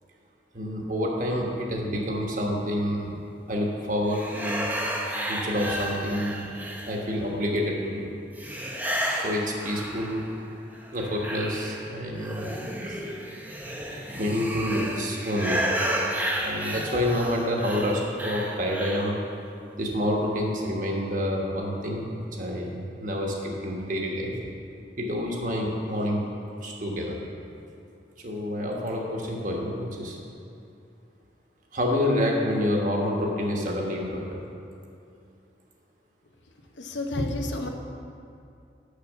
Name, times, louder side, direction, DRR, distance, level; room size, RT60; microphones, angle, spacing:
voice 1, 0.5-3.1 3.5-4.7 5.3-6.5 6.9-8.1 9.2-10.2 10.9-12.5 12.9-13.0 14.1-15.6 16.4-19.2 19.8-24.3 25.0-26.2 26.6-27.2 28.2-30.2 31.7-34.4, left 1 dB, 45° right, -1 dB, 1.2 m, -28 dB
sound 1, 4.1-7.3 8.4-10.4 10.7-19.2, right 1 dB, 10° right, 0.7 m, -32 dB
voice 2, 36.8-37.7, left 1 dB, 90° left, 3 dB, 0.8 m, -29 dB
6.7 x 6.2 x 7.2 m, 2.6 s
head